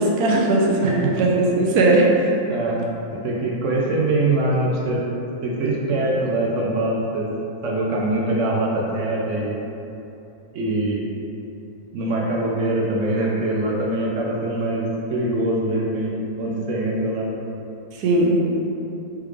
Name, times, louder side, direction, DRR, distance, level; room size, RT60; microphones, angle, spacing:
voice 1, 0.0-2.3 17.9-18.4, right 2 dB, 85° right, -2 dB, 1.1 m, -18 dB
voice 2, 0.8-1.2 2.5-2.8 3.2-5.1 5.4-7.3 7.6-9.6 10.5-11.1 11.9-17.3, right 2 dB, 70° right, -3 dB, 0.8 m, -23 dB
3.4 x 3.3 x 3.2 m, 2.8 s
omnidirectional pair, 1.6 m